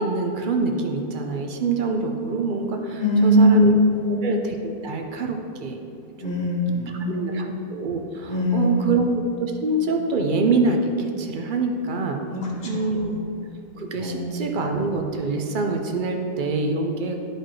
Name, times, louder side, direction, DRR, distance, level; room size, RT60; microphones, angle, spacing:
voice 1, 0.0-3.7 4.1-5.8 6.2-6.3 7.1-9.1 9.4-12.2 12.6-13.2 13.8-17.2, right 3 dB, 60° right, 3 dB, 0.5 m, -25 dB
voice 2, 3.0-4.2 6.2-7.5 8.3-9.0 12.3-13.2 14.0-14.5, equal, 35° left, -2 dB, 1.4 m, -21 dB
12.0 x 4.4 x 3.1 m, 2.7 s
omnidirectional pair, 1.6 m